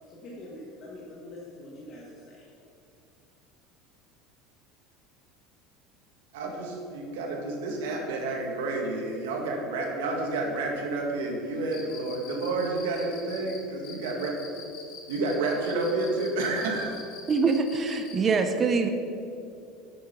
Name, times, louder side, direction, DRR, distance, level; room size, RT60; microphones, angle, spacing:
voice 1, 0.1-2.4 9.4-9.5 12.5-13.5, left 1 dB, 40° left, -4 dB, 1.6 m, -44 dB
voice 2, 6.3-14.6 15.1-17.0, right 2 dB, 90° right, 0 dB, 1.9 m, -30 dB
Cricket, 11.6-18.2, left 6 dB, 60° left, 1.6 m, -45 dB
voice 3, 17.3-18.9, right 4 dB, 30° right, 7 dB, 0.8 m, -24 dB
8.5 x 6.4 x 5.8 m, 2.5 s
supercardioid pair, 120°, 0 cm